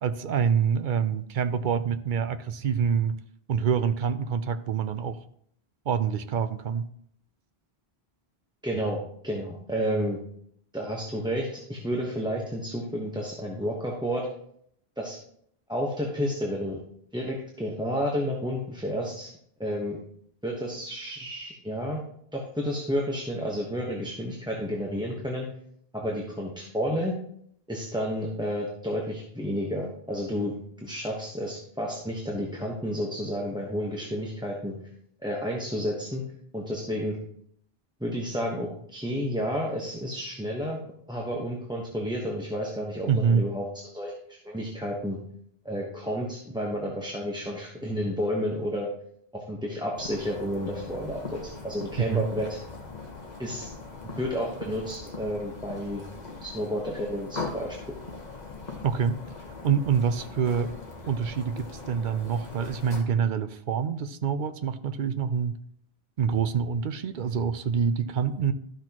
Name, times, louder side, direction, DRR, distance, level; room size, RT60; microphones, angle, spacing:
voice 1, 0.0-3.2 3.5-5.2 5.9-6.9 43.1-43.5 52.1-52.3 58.8-59.2 59.6-60.7 61.1-65.5 66.2-68.5, right 7 dB, 60° right, 12 dB, 0.6 m, -26 dB
voice 2, 8.6-10.2 10.7-14.3 15.0-15.2 15.7-16.8 17.1-19.3 19.6-20.0 20.4-22.0 22.3-25.5 25.9-27.1 27.7-34.7 35.2-36.2 36.5-37.2 38.0-40.8 41.1-45.2 45.6-48.9 49.3-52.6 53.4-53.7 54.2-56.0 56.4-57.9, equal, 5° right, -2 dB, 1.0 m, -31 dB
sound 1, 50.0-63.0, left 3 dB, 45° left, 1.4 m, -40 dB
12.5 x 6.0 x 2.9 m, 0.67 s
omnidirectional pair, 1.1 m